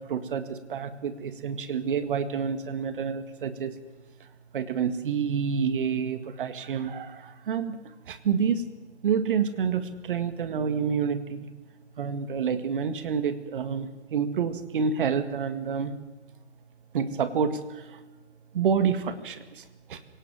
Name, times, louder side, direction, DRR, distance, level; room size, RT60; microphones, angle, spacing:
voice 1, 0.0-3.8 4.2-4.3 4.5-8.6 9.0-11.5 12.0-15.9 16.9-18.0 18.5-20.0, right 6 dB, 50° right, 11 dB, 2.0 m, -28 dB
26.5 x 18.0 x 7.5 m, 1.3 s
figure-of-eight pair, 130°, 35 cm